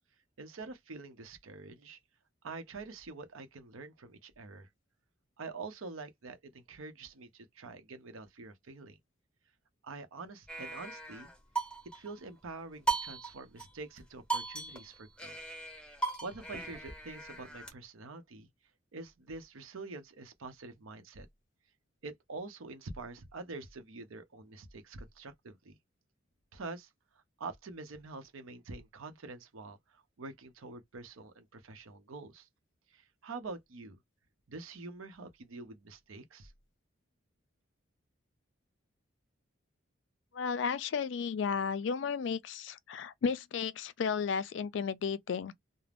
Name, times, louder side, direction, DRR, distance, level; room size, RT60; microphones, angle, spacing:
voice 1, 0.4-2.0 2.4-4.7 5.4-9.0 9.8-11.3 11.9-15.4 16.2-18.5 18.9-21.3 22.0-25.8 26.5-26.9 27.4-32.5 32.9-34.0 34.5-36.5, right 3 dB, 80° right, 0.7 m, -46 dB
sound 1, 10.5-12.1 12.9-13.7 14.0-14.1 14.3-17.7, right 4 dB, 5° left, 0.7 m, -37 dB
voice 2, 40.3-45.5, left 6 dB, 60° left, 0.3 m, -33 dB
2.4 x 2.0 x 3.3 m
head